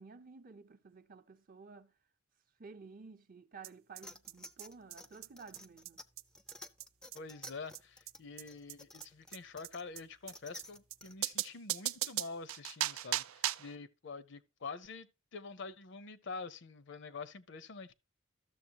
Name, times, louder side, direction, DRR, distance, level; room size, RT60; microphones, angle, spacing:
voice 1, 0.0-1.9 2.6-6.0, right 4 dB, 40° right, 0.6 m, -53 dB
sound 1, 3.6-3.7 4.0-4.1 4.3-4.4 4.6-4.7 4.9-5.0 5.2-5.3 5.5-5.6 5.9-6.0 6.2-6.3 6.5-6.6 6.8-6.9 7.1-7.2 7.4-7.5 7.7-7.8 8.1-8.2 8.4-8.5 8.7-8.8 9.0-9.1 9.3-9.4 9.6-9.7 10.0-10.1 10.3-10.4 10.6-10.7 10.9-11.0 11.2-13.8, right 14 dB, 80° right, 0.4 m, -37 dB
sound 2, 4.0-11.2, left 1 dB, 5° left, 0.4 m, -53 dB
voice 2, 7.1-17.9, left 4 dB, 60° left, 0.6 m, -46 dB
13.0 x 6.8 x 2.8 m
head